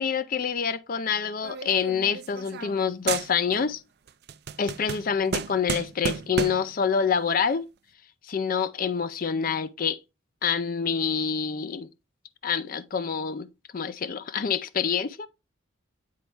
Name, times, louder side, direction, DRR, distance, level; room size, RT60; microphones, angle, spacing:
voice 1, 0.0-3.8 4.6-7.6 8.3-10.0 10.4-11.9 12.4-13.5 13.7-15.3, left 6 dB, 45° left, 0.4 m, -27 dB
sound 1, 1.4-2.8 3.1-3.7 4.1-6.8, right 6 dB, 55° right, 0.5 m, -32 dB
9.4 x 4.0 x 3.4 m
head